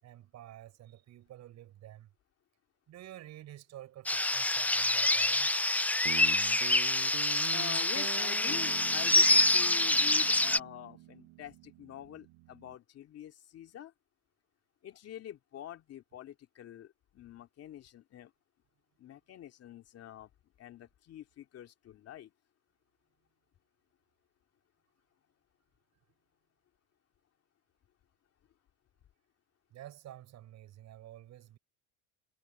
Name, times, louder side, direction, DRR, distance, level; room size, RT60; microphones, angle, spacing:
voice 1, 0.0-2.1 2.9-5.5 29.7-31.6, right 13 dB, 55° right, 6.3 m, -50 dB
sound 1, 4.1-10.6, left 2 dB, 5° left, 0.5 m, -26 dB
Guitar, 6.0-12.7, right 21 dB, 75° right, 1.1 m, -46 dB
voice 2, 7.5-13.9 14.8-18.3 19.0-20.3 20.6-22.3, left 11 dB, 45° left, 2.5 m, -46 dB
supercardioid pair, 110°, 33 cm